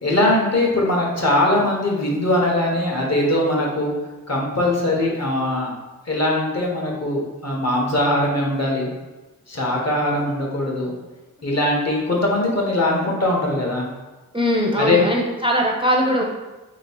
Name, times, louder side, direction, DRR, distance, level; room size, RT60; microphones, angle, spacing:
voice 1, 0.0-3.9 4.3-5.7 6.1-8.9 9.5-10.9 11.4-13.9 14.8-15.0, left 1 dB, 50° left, -2 dB, 1.1 m, -21 dB
voice 2, 14.3-16.2, equal, 15° right, -1 dB, 0.5 m, -20 dB
3.1 x 3.0 x 4.4 m, 1.1 s
wide cardioid pair, 65°, 34 cm